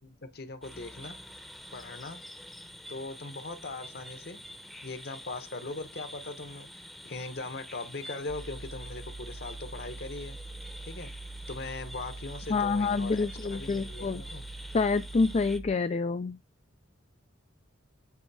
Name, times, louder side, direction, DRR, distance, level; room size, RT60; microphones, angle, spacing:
voice 1, 0.0-1.2 1.7-2.2 2.9-4.4 4.8-10.4 10.8-11.1 11.5-14.5, left 3 dB, 50° left, 1.0 m, -40 dB
sound 1, 0.6-15.6, equal, ahead, 0.7 m, -47 dB
sound 2, 8.3-15.7, right 3 dB, 40° right, 0.5 m, -43 dB
voice 2, 12.5-14.2 14.7-16.4, left 4 dB, 35° left, 0.3 m, -27 dB
8.4 x 3.2 x 4.7 m
head